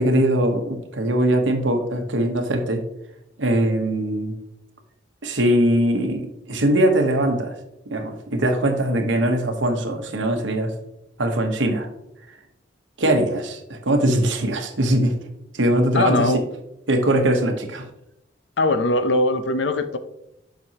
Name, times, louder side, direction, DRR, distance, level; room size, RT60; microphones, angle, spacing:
voice 1, 0.0-2.8 3.4-4.4 5.2-7.5 7.9-10.7 11.2-11.9 13.0-15.1 15.5-16.3 16.9-17.9, right 1 dB, 85° right, 5 dB, 1.2 m, -21 dB
voice 2, 15.9-16.4 18.6-20.0, left 2 dB, 70° left, 10 dB, 0.7 m, -21 dB
7.6 x 6.1 x 2.9 m, 0.83 s
head